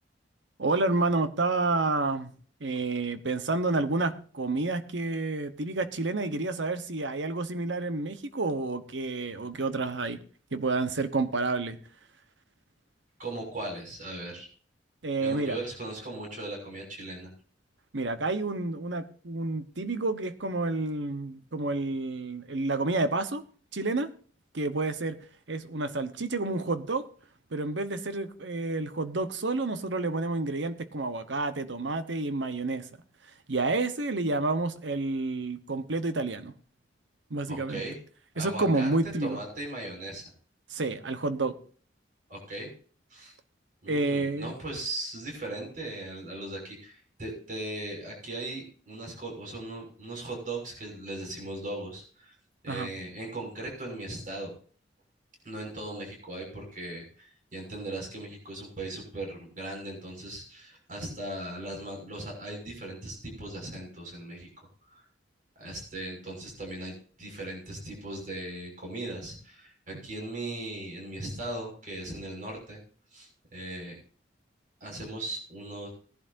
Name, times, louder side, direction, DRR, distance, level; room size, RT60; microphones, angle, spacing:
voice 1, 0.6-2.3 2.6-10.2 10.5-11.8 15.0-15.6 17.9-23.4 23.7-24.1 24.5-25.2 25.5-27.1 27.5-32.9 33.5-36.5 37.3-37.8 38.4-39.4 40.7-41.5 43.9-44.5 52.7-52.9, right 3 dB, 85° right, 11 dB, 1.1 m, -29 dB
voice 2, 13.2-14.5 15.2-17.3 37.5-38.0 38.3-38.9 39.2-40.2 42.3-42.7 43.1-43.3 43.8-52.3 52.6-54.5 55.4-64.5 64.9-65.0 65.6-72.8 73.1-74.0 74.8-75.9, right 2 dB, 45° right, 0 dB, 6.2 m, -38 dB
19.0 x 11.0 x 2.7 m, 0.43 s
head